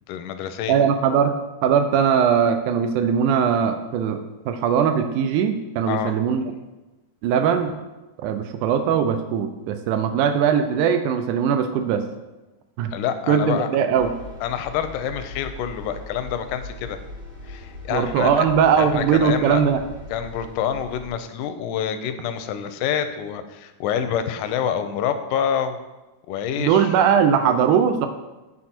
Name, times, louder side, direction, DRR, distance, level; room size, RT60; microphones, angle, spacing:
voice 1, 0.1-0.8 5.9-6.1 12.9-13.7 14.4-17.0 17.5-18.5 18.8-19.6 20.1-25.8 26.3-26.9, left 9 dB, 85° left, 9 dB, 2.1 m, -27 dB
voice 2, 0.7-1.3 1.6-6.5 7.2-7.8 8.2-12.0 12.8-12.9 13.3-14.1 17.9-19.9 26.6-28.1, right 7 dB, 85° right, 7 dB, 2.0 m, -20 dB
sound 1, 13.9-21.1, left 2 dB, 60° right, 3.4 m, -40 dB
9.2 x 4.2 x 4.3 m, 1.1 s
omnidirectional pair, 3.6 m